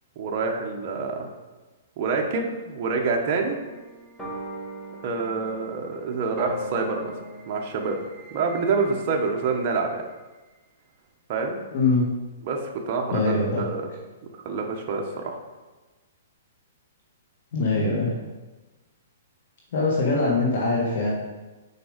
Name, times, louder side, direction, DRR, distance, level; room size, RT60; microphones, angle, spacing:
voice 1, 0.2-1.3 2.0-3.6 5.0-7.1 7.5-8.0 8.3-10.0 11.3-11.6 12.4-13.8 14.4-15.4, right 4 dB, 35° right, 1 dB, 1.0 m, -27 dB
sound 1, 3.0-9.7, equal, 5° left, 1.3 m, -40 dB
voice 2, 11.7-12.1 13.1-13.7 17.5-18.1 19.7-21.1, left 3 dB, 55° left, -3 dB, 1.5 m, -22 dB
6.8 x 4.7 x 5.1 m, 1.2 s
hypercardioid pair, 165°, 0 cm